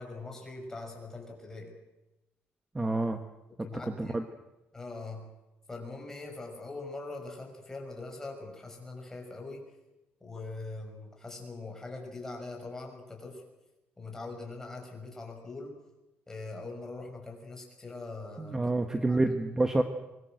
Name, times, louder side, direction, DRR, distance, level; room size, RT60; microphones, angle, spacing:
voice 1, 0.0-1.7 3.6-4.2 4.7-5.3 5.7-9.6 10.2-13.4 14.0-15.7 16.3-18.6 19.1-19.2, left 3 dB, 10° left, 2 dB, 6.1 m, -42 dB
voice 2, 2.7-3.2 4.0-4.2 18.4-19.8, right 2 dB, 15° right, 7 dB, 1.3 m, -28 dB
24.5 x 22.0 x 7.8 m, 1.0 s
cardioid pair, 155°, 4 cm